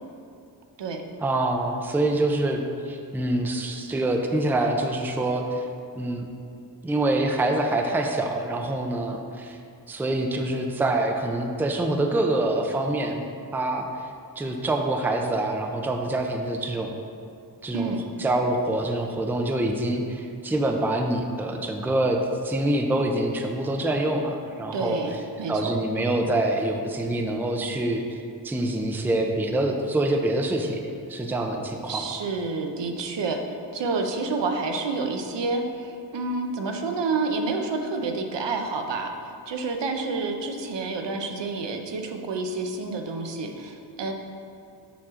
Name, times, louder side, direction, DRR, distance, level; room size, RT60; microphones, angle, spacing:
voice 1, 1.2-5.7 6.0-6.3 6.8-9.6 9.9-13.2 13.5-13.9 14.4-16.9 17.6-17.9 18.2-25.0 25.5-30.8 31.1-32.0, right 1 dB, 5° right, 3 dB, 0.3 m, -25 dB
voice 2, 24.7-25.7 31.9-33.4 33.7-39.1 39.5-44.1, right 3 dB, 85° right, 4 dB, 0.8 m, -29 dB
7.1 x 6.3 x 3.7 m, 2.6 s
wide cardioid pair, 170°, 42 cm